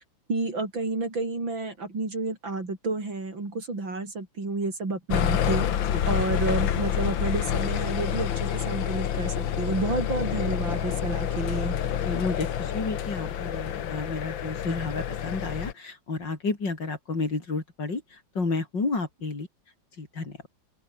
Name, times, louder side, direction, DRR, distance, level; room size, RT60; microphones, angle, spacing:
voice 1, 0.3-5.7 6.1-11.8, right 3 dB, 85° right, 6.5 m, -30 dB
sound 1, 5.1-15.7, left 9 dB, 90° left, 2.0 m, -28 dB
voice 2, 12.0-18.0 18.3-19.5 20.0-20.4, left 3 dB, 70° left, 5.0 m, -31 dB
open air
omnidirectional pair, 2.0 m